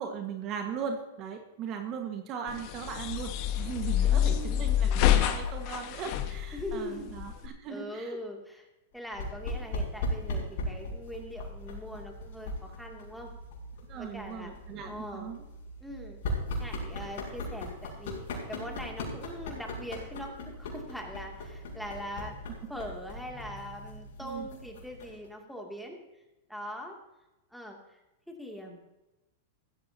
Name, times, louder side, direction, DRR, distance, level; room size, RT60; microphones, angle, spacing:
voice 1, 0.0-8.2 13.9-15.4 24.2-24.5, right 7 dB, 40° right, 4 dB, 1.6 m, -38 dB
sound 1, 2.5-7.5, left 11 dB, 50° left, 1.3 m, -27 dB
voice 2, 4.0-4.7 6.5-7.1 7.7-8.7 8.9-13.3 13.9-14.5 14.8-15.3 15.8-16.2 16.6-18.2 18.5-22.3 22.7-26.2 26.5-27.0 27.5-28.0 28.3-28.9, equal, ahead, 0 dB, 2.6 m, -42 dB
sound 2, 9.1-25.3, left 1 dB, 70° left, 5.4 m, -38 dB
15.5 x 14.0 x 2.9 m, 1.0 s
hypercardioid pair, 120°, 0 cm